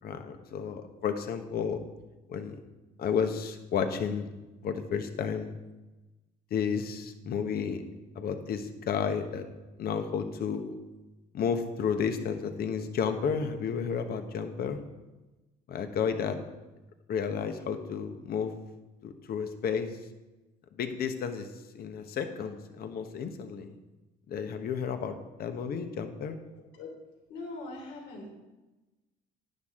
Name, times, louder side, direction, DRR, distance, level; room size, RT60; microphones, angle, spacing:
voice 1, 0.0-1.8 2.3-2.6 3.0-4.3 4.6-5.6 6.5-7.8 8.1-9.5 9.8-10.8 11.3-14.8 15.7-16.4 17.1-18.5 19.0-20.0 20.7-21.5 21.7-23.7 24.3-26.4, left 6 dB, 60° left, 7 dB, 1.3 m, -32 dB
voice 2, 27.3-28.3, left 2 dB, 80° left, -1 dB, 3.1 m, -41 dB
11.0 x 10.0 x 3.8 m, 1.1 s
supercardioid pair, 75°, 18 cm